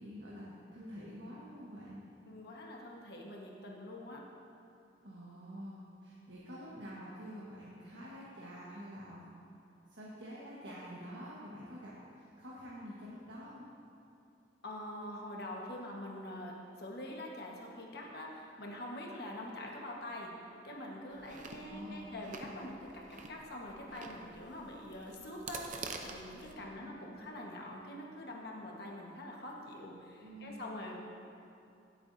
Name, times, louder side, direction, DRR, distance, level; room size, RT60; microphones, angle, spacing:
voice 1, 0.0-2.0 5.0-9.2 9.9-13.7 21.5-22.1 26.6-27.1 30.2-30.6, equal, 75° right, -7 dB, 1.4 m, -48 dB
voice 2, 2.2-4.2 14.6-31.0, left 1 dB, 60° left, -2 dB, 1.4 m, -45 dB
Chewing mastication, 21.1-26.5, right 4 dB, 45° right, 0.7 m, -48 dB
16.5 x 8.1 x 2.7 m, 2.7 s
head